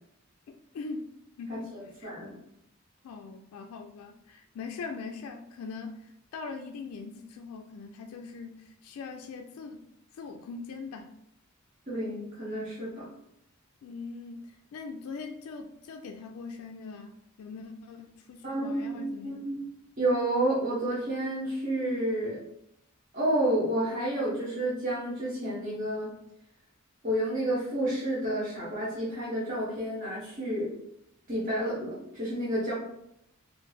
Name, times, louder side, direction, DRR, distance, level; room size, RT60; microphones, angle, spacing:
voice 1, 0.5-1.1 1.4-1.7 2.0-2.1 3.0-9.9 10.1-11.1 13.8-19.4, left 4 dB, 90° left, 5 dB, 0.3 m, -41 dB
voice 2, 1.5-2.4 11.9-13.1 18.4-19.6 20.0-22.4 23.1-26.1 27.0-30.7 31.3-32.7, right 1 dB, 35° right, -8 dB, 0.9 m, -30 dB
3.1 x 2.5 x 3.2 m, 0.77 s
head